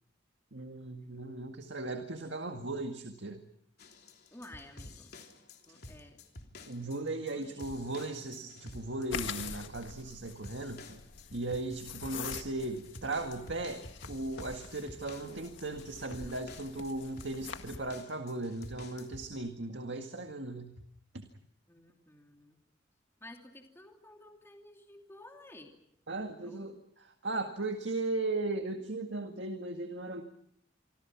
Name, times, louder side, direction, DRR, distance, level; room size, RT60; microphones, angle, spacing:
voice 1, 0.5-3.4 6.7-11.0 11.3-20.8 21.1-21.3 26.1-30.2, right 2 dB, 65° right, 5 dB, 1.9 m, -37 dB
sound 1, 3.8-19.3, left 2 dB, 55° left, 3.4 m, -51 dB
voice 2, 4.3-5.1 5.7-6.2 7.2-7.5 21.7-22.6 23.2-25.7 26.2-26.7, left 1 dB, 15° left, 2 dB, 2.8 m, -53 dB
sound 2, 9.1-17.9, left 6 dB, 85° left, 1.8 m, -45 dB
27.0 x 26.0 x 6.0 m, 0.71 s
head